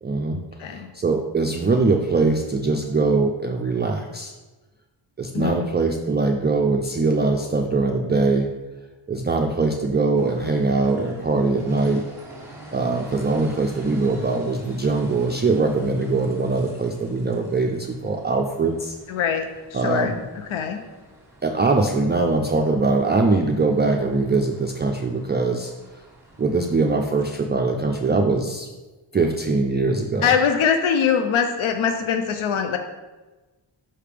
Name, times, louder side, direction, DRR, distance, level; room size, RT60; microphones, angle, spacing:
voice 1, 0.0-4.3 5.2-8.5 9.1-12.0 12.7-19.0 19.7-20.2 21.4-25.7 26.4-28.7 29.1-30.3, right 3 dB, 25° right, 2 dB, 0.4 m, -22 dB
voice 2, 5.3-5.7 19.1-20.1 20.5-20.8 30.2-32.8, left 7 dB, 70° left, 6 dB, 0.6 m, -22 dB
sound 1, 10.2-27.3, right 1 dB, 5° right, 1.5 m, -45 dB
5.7 x 3.3 x 5.0 m, 1.2 s
wide cardioid pair, 75°, 50 cm